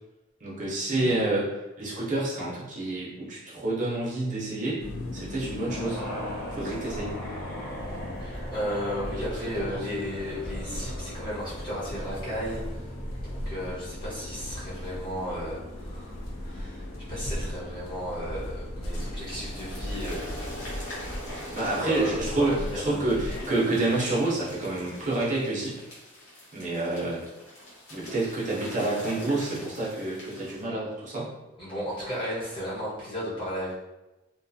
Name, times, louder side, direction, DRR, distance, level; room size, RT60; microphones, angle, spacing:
voice 1, 0.4-4.8 5.1-6.0 6.5-7.2 21.5-25.8 26.5-27.2 27.9-31.3, right 2 dB, 40° right, -5 dB, 0.6 m, -28 dB
sound 1, 4.8-23.5, left 1 dB, 85° left, 0.4 m, -38 dB
sound 2, 5.7-25.4, equal, 45° left, 0.9 m, -42 dB
voice 2, 8.2-12.9 13.2-20.3 20.5-21.1 21.6-23.0 31.6-33.8, equal, 25° left, -9 dB, 1.1 m, -34 dB
sound 3, 19.2-30.6, left 1 dB, 70° left, 1.0 m, -45 dB
2.5 x 2.3 x 2.6 m, 1.0 s
head